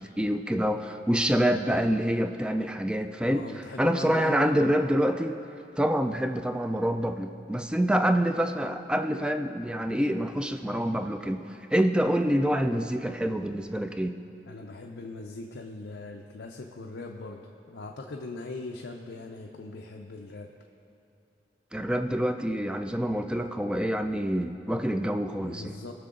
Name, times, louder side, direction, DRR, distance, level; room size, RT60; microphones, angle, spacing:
voice 1, 0.0-3.5 3.8-5.4 5.8-14.2 21.7-25.7, equal, 5° right, 7 dB, 0.3 m, -26 dB
voice 2, 3.3-4.7 14.5-17.4 17.7-20.5 25.4-25.9, left 3 dB, 90° left, 1 dB, 0.6 m, -39 dB
18.5 x 6.6 x 3.8 m, 2.9 s
head